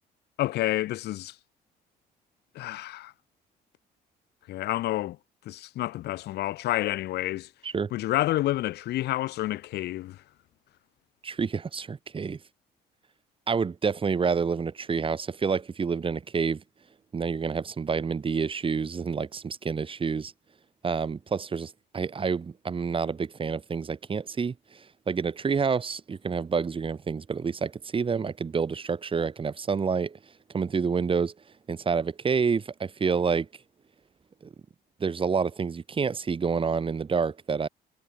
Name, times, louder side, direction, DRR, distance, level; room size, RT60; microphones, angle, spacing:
voice 1, 0.4-1.4 2.5-3.1 4.5-5.2 5.5-7.5 7.9-10.2, left 15 dB, 75° left, 5.7 m, -29 dB
voice 2, 11.2-12.4 13.5-16.6 17.1-20.3 20.8-30.2 30.5-31.3 31.7-33.5 35.0-37.7, right 5 dB, 30° right, 7.9 m, -28 dB
cardioid pair, 110°, 17 cm